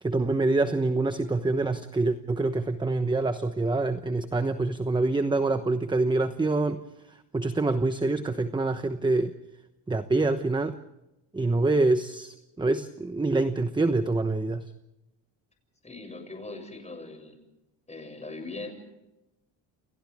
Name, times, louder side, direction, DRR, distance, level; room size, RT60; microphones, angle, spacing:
voice 1, 0.0-6.8 7.1-9.3 9.9-10.8 11.3-14.6, right 2 dB, 10° right, 9 dB, 1.0 m, -26 dB
voice 2, 15.8-17.4 17.9-18.7, left 3 dB, 15° left, 4 dB, 7.3 m, -40 dB
30.0 x 28.5 x 3.6 m, 0.93 s
cardioid pair, 125°, 44 cm